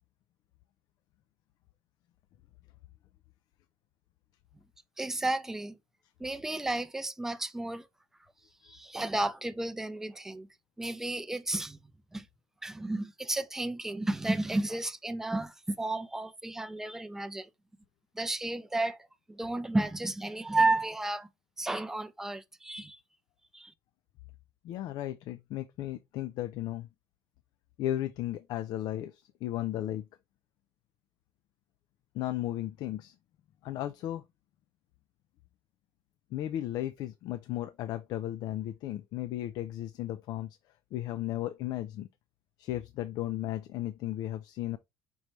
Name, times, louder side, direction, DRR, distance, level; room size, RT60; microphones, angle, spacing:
voice 1, 5.0-5.8 6.2-7.9 8.6-10.5 10.8-12.3 12.6-17.5 18.1-19.0 19.3-21.3 21.6-23.0 23.5-23.7, right 2 dB, 5° right, 0.4 m, -32 dB
voice 2, 24.6-26.9 27.8-30.1 32.1-33.1 33.6-34.2 36.3-40.6 40.9-42.1 42.6-44.8, left 13 dB, 70° left, 0.4 m, -35 dB
5.3 x 3.0 x 3.2 m
cardioid pair, 140°, 7 cm